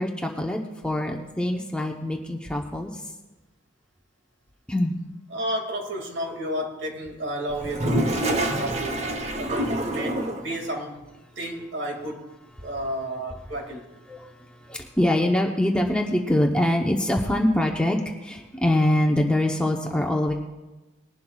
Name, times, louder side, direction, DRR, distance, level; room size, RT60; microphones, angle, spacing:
voice 1, 0.0-3.0 4.7-5.0 14.1-14.3 14.6-20.3, left 1 dB, 5° left, 1 dB, 0.8 m, -24 dB
voice 2, 5.3-8.0 8.3-9.1 9.4-11.0 11.4-12.3 12.6-13.9, equal, 60° right, 2 dB, 2.1 m, -32 dB
Toilet flush, 7.5-10.6, right 1 dB, 30° right, 0.8 m, -26 dB
20.0 x 11.5 x 2.3 m, 1.1 s
head